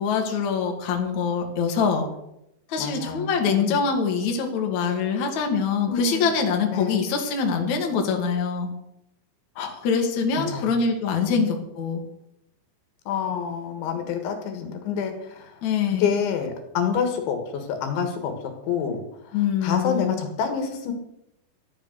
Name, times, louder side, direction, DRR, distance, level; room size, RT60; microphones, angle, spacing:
voice 1, 0.0-2.0 2.7-8.7 9.8-12.0 15.6-16.1 19.3-20.2, left 5 dB, 50° left, 2 dB, 2.7 m, -24 dB
voice 2, 2.8-3.8 4.8-4.9 5.9-6.3 6.7-7.1 9.6-9.8 10.5-10.7 11.2-11.5 13.1-15.5 16.0-18.3 18.7-19.0 19.6-20.9, left 7 dB, 70° left, 5 dB, 3.9 m, -28 dB
14.0 x 10.5 x 6.6 m, 0.82 s
omnidirectional pair, 5.7 m